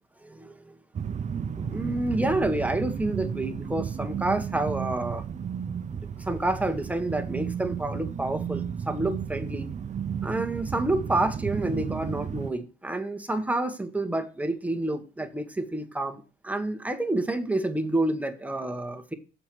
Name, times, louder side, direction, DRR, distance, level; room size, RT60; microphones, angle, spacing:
voice 1, 0.2-0.8 1.6-5.2 5.9-9.7 10.2-19.1, right 2 dB, 5° right, 1.1 m, -29 dB
sound 1, 0.9-12.5, right 7 dB, 35° right, 0.5 m, -33 dB
6.7 x 4.4 x 6.1 m
cardioid pair, 90°, 20 cm